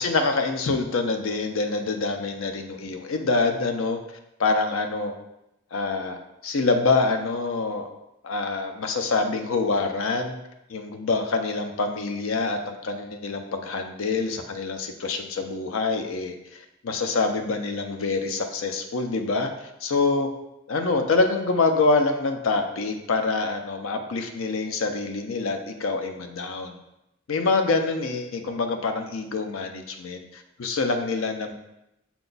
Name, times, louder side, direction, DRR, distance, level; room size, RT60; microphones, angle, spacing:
voice 1, 0.0-4.0 4.4-5.1 5.7-7.9 8.2-10.4 10.7-20.3 20.7-26.8 27.3-31.5, left 3 dB, 85° left, 6 dB, 0.5 m, -26 dB
5.8 x 2.2 x 3.9 m, 0.85 s
head